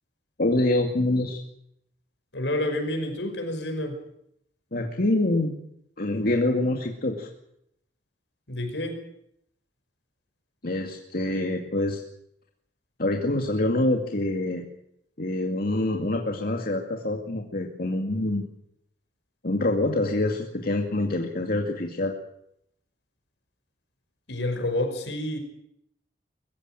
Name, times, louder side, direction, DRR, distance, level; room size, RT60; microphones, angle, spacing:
voice 1, 0.4-1.4 4.7-5.5 6.0-7.3 10.6-12.0 13.0-14.6 15.2-18.5 19.4-22.1, left 1 dB, 55° left, 2 dB, 2.3 m, -25 dB
voice 2, 2.3-4.0 8.5-9.0 24.3-25.4, left 1 dB, 80° left, 6 dB, 5.6 m, -29 dB
23.5 x 15.5 x 9.1 m, 0.75 s
head